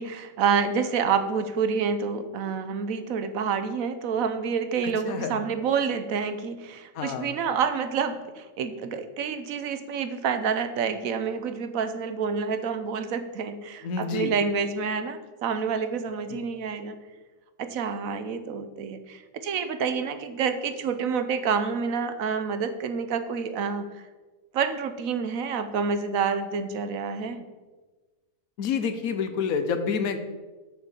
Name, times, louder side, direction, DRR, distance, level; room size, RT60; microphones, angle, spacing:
voice 1, 0.0-17.0 17.6-23.8 24.5-27.4, right 6 dB, 80° right, 10 dB, 1.2 m, -28 dB
voice 2, 4.8-5.4 6.9-7.3 13.8-14.3 16.3-16.4 28.6-30.2, left 6 dB, 85° left, 8 dB, 1.3 m, -28 dB
6.6 x 6.3 x 7.3 m, 1.3 s
omnidirectional pair, 1.4 m